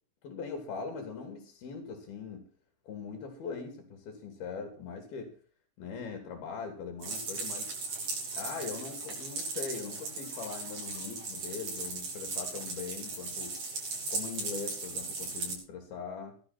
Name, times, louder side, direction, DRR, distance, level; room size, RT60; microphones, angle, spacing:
voice 1, 0.2-2.4 2.8-5.3 5.8-7.7 8.3-13.5 14.1-16.4, left 5 dB, 75° left, 5 dB, 4.5 m, -41 dB
sound 1, 7.0-15.5, right 3 dB, 65° right, 7.5 m, -37 dB
17.5 x 12.0 x 4.3 m, 0.42 s
omnidirectional pair, 4.4 m